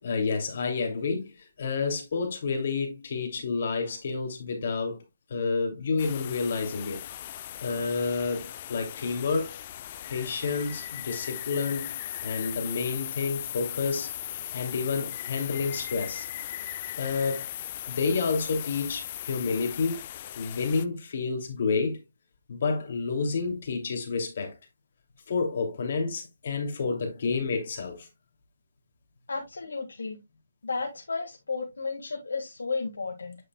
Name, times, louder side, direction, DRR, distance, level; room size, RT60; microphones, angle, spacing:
voice 1, 0.0-5.0 5.3-7.0 7.6-9.6 10.1-11.9 12.2-14.1 14.5-16.3 17.0-17.4 17.9-20.0 20.4-22.0 22.5-24.5 25.3-28.1, left 4 dB, 55° left, 2.6 m, -29 dB
sound 1, 6.0-20.9, left 12 dB, 35° left, 0.5 m, -38 dB
voice 2, 29.3-30.2 30.6-33.4, left 4 dB, 80° left, 1.7 m, -33 dB
8.6 x 6.4 x 2.2 m
hypercardioid pair, 150°, 0 cm